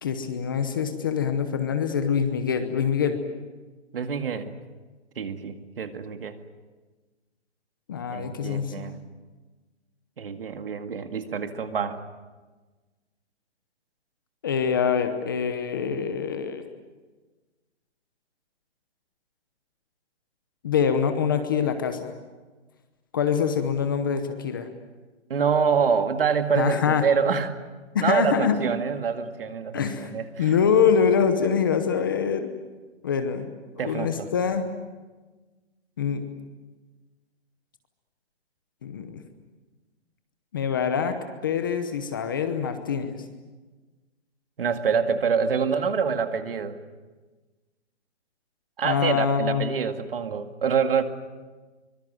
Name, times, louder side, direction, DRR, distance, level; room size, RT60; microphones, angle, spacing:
voice 1, 0.0-3.2 7.9-8.7 14.4-16.6 20.6-22.1 23.1-24.7 26.6-27.0 27.9-28.6 29.7-30.1 30.4-32.5 33.0-33.5 33.8-34.6 36.0-36.2 38.8-39.2 40.5-41.2 41.4-43.2 48.8-49.6, left 7 dB, 20° left, 8 dB, 0.9 m, -24 dB
voice 2, 3.9-4.5 5.2-6.4 8.1-8.9 10.2-12.0 25.3-27.6 28.0-29.8 30.1-30.5 33.8-34.3 44.6-46.8 48.8-51.0, right 6 dB, 55° right, 7 dB, 2.1 m, -26 dB
24.5 x 24.0 x 7.7 m, 1.3 s
hypercardioid pair, 175°, 34 cm